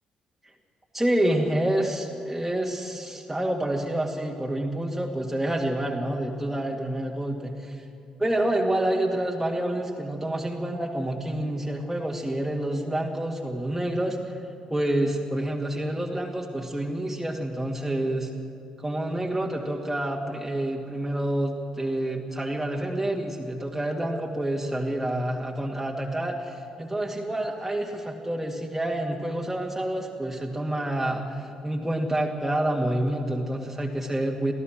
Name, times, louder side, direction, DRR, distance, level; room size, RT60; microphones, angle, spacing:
voice 1, 0.9-7.8 8.2-14.2 14.7-18.3 18.8-34.5, right 1 dB, 5° right, -1 dB, 2.3 m, -28 dB
27.5 x 17.0 x 6.5 m, 2.5 s
figure-of-eight pair, 40°, 3 cm